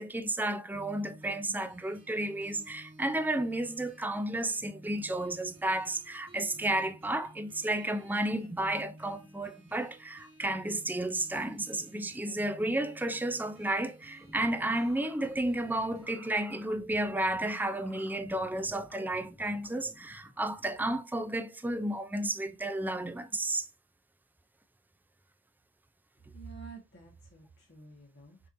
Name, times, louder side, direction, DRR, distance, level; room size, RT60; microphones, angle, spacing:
voice 1, 0.0-23.7, right 1 dB, 10° right, 0.4 m, -32 dB
sound 1, 0.7-16.1, right 1 dB, 85° right, 1.6 m, -55 dB
sound 2, 14.2-21.0, equal, 5° left, 0.9 m, -54 dB
voice 2, 26.3-28.5, right 4 dB, 60° left, 1.2 m, -49 dB
6.7 x 2.9 x 2.5 m
head